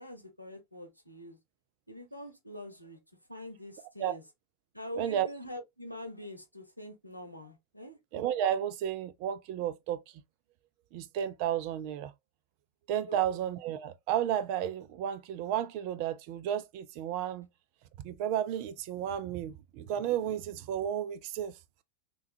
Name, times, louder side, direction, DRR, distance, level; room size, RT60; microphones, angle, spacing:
voice 1, 0.0-1.4 1.9-3.0 3.3-4.2 4.7-8.0 13.1-13.2, left 1 dB, 90° left, 0.8 m, -44 dB
voice 2, 5.0-5.3 8.1-10.0 10.9-12.1 12.9-17.5 18.0-21.5, right 10 dB, 45° right, 0.4 m, -32 dB
3.5 x 3.0 x 2.6 m
figure-of-eight pair, 90°, 0 cm